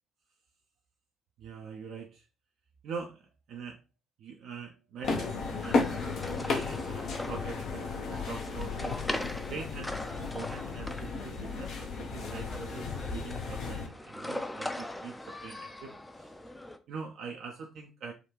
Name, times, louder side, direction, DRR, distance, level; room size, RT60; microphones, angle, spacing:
voice 1, 1.4-2.2 2.8-3.8 4.2-5.9 6.3-9.0 9.4-16.3 16.9-18.1, right 5 dB, 55° right, 2 dB, 0.4 m, -44 dB
sound 1, 5.0-13.9, left 4 dB, 55° left, 0.6 m, -34 dB
sound 2, 5.6-16.8, left 1 dB, 10° left, 0.4 m, -41 dB
3.5 x 2.3 x 2.9 m, 0.30 s
figure-of-eight pair, 45°, 0 cm